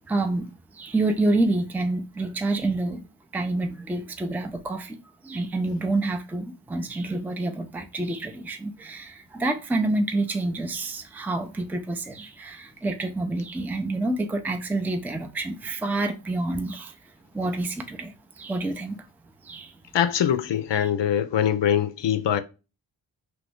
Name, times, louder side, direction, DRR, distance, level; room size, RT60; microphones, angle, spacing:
voice 1, 0.1-0.5 0.7-3.0 3.3-5.0 5.2-17.0 17.3-19.0 19.4-19.7, right 2 dB, 5° right, 0.5 m, -28 dB
voice 2, 19.9-22.4, left 9 dB, 60° left, 0.5 m, -23 dB
3.0 x 2.5 x 3.4 m
cardioid pair, 45°, 48 cm